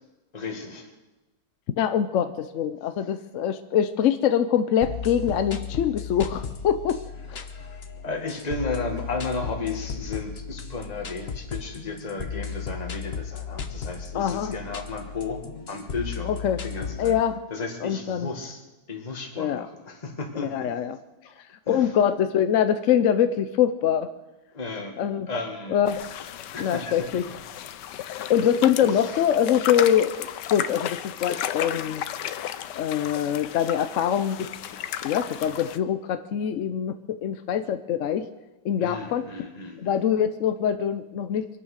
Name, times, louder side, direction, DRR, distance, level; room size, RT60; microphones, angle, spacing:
voice 1, 0.3-0.9 7.4-15.4 15.7-16.3 16.6-17.1 17.5-18.6 18.9-20.7 21.3-21.4 21.7-21.9 24.5-24.9 25.3-25.8 26.5-27.3 28.8-29.1 38.8-40.0, left 3 dB, 25° left, 2 dB, 1.9 m, -34 dB
voice 2, 1.8-7.0 7.3-7.4 14.1-14.5 16.2-16.6 17.0-17.4 17.8-18.3 19.4-19.7 20.4-21.0 21.7-24.1 25.0-25.3 25.7-26.0 26.6-27.2 28.0-32.0 32.8-34.5 35.0-38.3 38.6-39.2 39.8-41.5, left 9 dB, 65° left, 10 dB, 0.8 m, -24 dB
sound 1, 4.8-17.2, left 6 dB, 40° left, 1.1 m, -35 dB
sound 2, 25.9-35.8, left 10 dB, 80° left, 1.3 m, -34 dB
24.5 x 9.0 x 6.5 m, 1.1 s
omnidirectional pair, 1.9 m